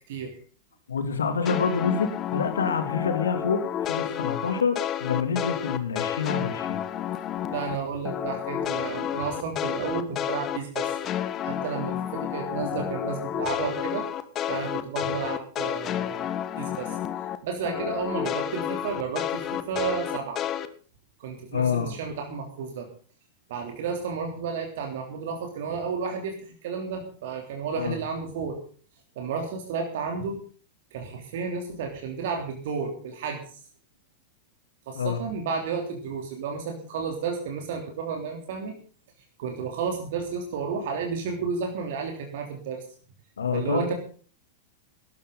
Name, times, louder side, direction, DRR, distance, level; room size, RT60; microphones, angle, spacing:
voice 1, 0.1-0.4 7.5-11.0 11.4-14.0 14.5-16.3 16.6-17.0 17.4-20.4 21.2-22.9 23.5-28.6 29.1-30.4 30.9-33.4 34.9-38.7 39.4-42.8 43.5-43.9, right 5 dB, 55° right, 3 dB, 3.2 m, -32 dB
voice 2, 0.9-6.8 21.5-21.9 27.7-28.0 34.9-35.2 43.4-43.9, left 5 dB, 70° left, 7 dB, 2.8 m, -27 dB
sound 1, 1.4-7.8 8.0-17.4 17.6-20.7, left 10 dB, 30° left, 1.4 m, -30 dB
18.5 x 13.0 x 4.0 m, 0.42 s
figure-of-eight pair, 95°, 0 cm